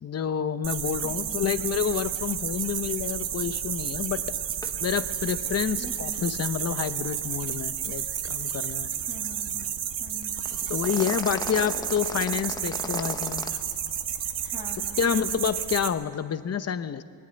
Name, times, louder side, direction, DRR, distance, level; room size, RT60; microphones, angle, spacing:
voice 1, 0.0-4.2 4.8-8.9 10.7-13.5 15.0-17.0, left 7 dB, 35° left, 12 dB, 0.8 m, -28 dB
sound 1, 0.6-15.9, right 9 dB, 85° right, 1.5 m, -31 dB
voice 2, 1.0-1.5 5.8-6.2 9.1-9.7 10.0-10.5 14.4-15.0, equal, 10° right, -2 dB, 1.7 m, -43 dB
sound 2, 4.6-4.7 5.0-5.2 5.5-5.6 10.5-13.5, left 2 dB, 10° left, 0.9 m, -36 dB
22.0 x 13.5 x 9.8 m, 2.2 s
wide cardioid pair, 160°, 43 cm